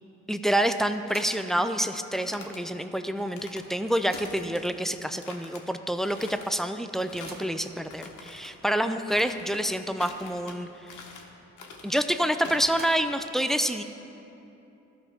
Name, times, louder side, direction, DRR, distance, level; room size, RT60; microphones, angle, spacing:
voice 1, 0.3-10.9 11.8-13.8, equal, ahead, 9 dB, 0.3 m, -27 dB
sound 1, 0.8-1.5 1.9-2.0 3.1-3.2 3.5-4.6 5.4-5.5 5.9-6.0 6.9-7.6 8.3-8.4 8.8-8.9 9.4-10.4 12.4-13.3, right 2 dB, 30° right, 1.0 m, -48 dB
sound 2, 1.9-2.6 3.2-3.7 4.1-4.8 5.2-5.6 6.0-6.6 7.0-7.5 7.9-8.5 9.1-9.6 10.0-10.6 10.9-11.3 11.6-12.0 12.4-12.8, left 4 dB, 80° left, 1.1 m, -45 dB
14.0 x 5.4 x 3.5 m, 2.9 s
cardioid pair, 90°, 30 cm